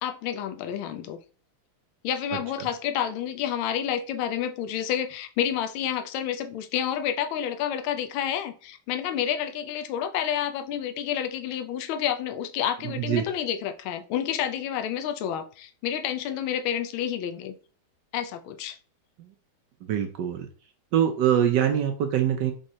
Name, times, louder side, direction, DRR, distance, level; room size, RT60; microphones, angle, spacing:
voice 1, 0.0-1.2 2.0-17.5 18.1-18.8, left 9 dB, 75° left, 8 dB, 1.3 m, -29 dB
voice 2, 2.3-2.7 12.8-13.3 19.2-19.3 19.8-20.5 20.9-22.5, right 9 dB, 75° right, 5 dB, 1.0 m, -24 dB
5.3 x 3.2 x 2.8 m, 0.38 s
omnidirectional pair, 2.4 m